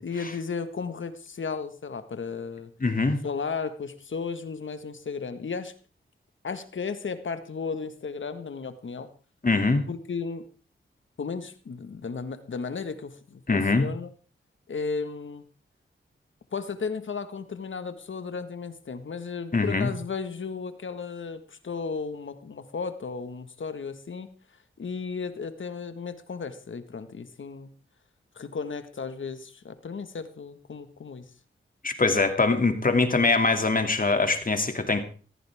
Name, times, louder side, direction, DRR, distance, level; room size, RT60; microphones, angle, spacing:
voice 1, 0.0-2.7 3.2-5.7 6.4-9.1 9.9-10.4 11.2-14.1 14.7-15.4 16.5-24.3 24.8-27.7 28.3-31.2, left 5 dB, 70° left, 10 dB, 1.7 m, -34 dB
voice 2, 2.8-3.2 9.4-9.8 13.5-13.9 19.5-19.9 31.8-35.0, left 3 dB, 40° left, 7 dB, 2.6 m, -23 dB
16.0 x 14.5 x 3.6 m, 0.38 s
cardioid pair, 50°, 21 cm